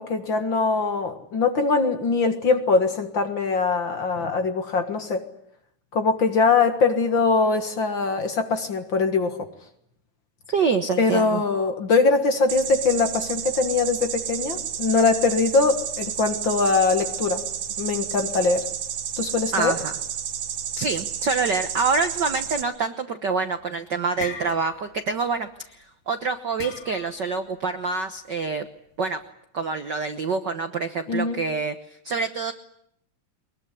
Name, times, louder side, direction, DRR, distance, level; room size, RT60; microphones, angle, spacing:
voice 1, 0.0-5.2 5.9-9.4 11.0-17.4 17.8-18.7 19.2-19.8 31.1-31.4, left 4 dB, 45° left, 7 dB, 2.1 m, -22 dB
voice 2, 10.5-11.4 19.5-19.9 20.8-28.7 29.0-29.2 29.5-31.7 32.0-32.5, right 4 dB, 60° right, 8 dB, 1.2 m, -26 dB
sound 1, 12.5-22.6, right 7 dB, 75° right, 3.2 m, -31 dB
sound 2, 23.3-23.6 24.0-25.0 25.3-25.6 26.6-27.3, left 6 dB, 85° left, 4.2 m, -37 dB
23.0 x 21.5 x 10.0 m, 0.73 s
omnidirectional pair, 3.4 m